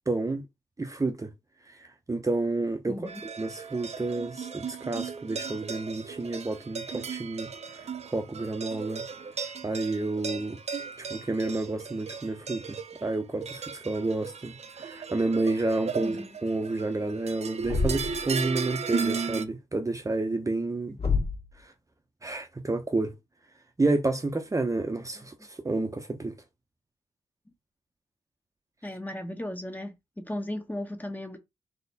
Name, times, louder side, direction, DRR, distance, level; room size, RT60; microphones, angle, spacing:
voice 1, 0.1-0.4 0.8-1.3 1.7-1.8 2.1-3.0 3.4-9.0 9.6-10.6 11.0-20.9 21.6-21.7 22.2-23.1 23.8-26.3, right 2 dB, 25° right, 0.9 m, -30 dB
voice 2, 2.9-3.2 16.0-16.4 21.0-21.1 28.8-31.4, left 1 dB, 15° left, 1.3 m, -36 dB
sound 1, 3.1-19.4, right 5 dB, 60° right, 0.8 m, -36 dB
Thump thud, 17.6-18.3 21.0-21.5, left 4 dB, 50° left, 2.0 m, -27 dB
4.1 x 3.0 x 4.1 m
cardioid pair, 70°, 13 cm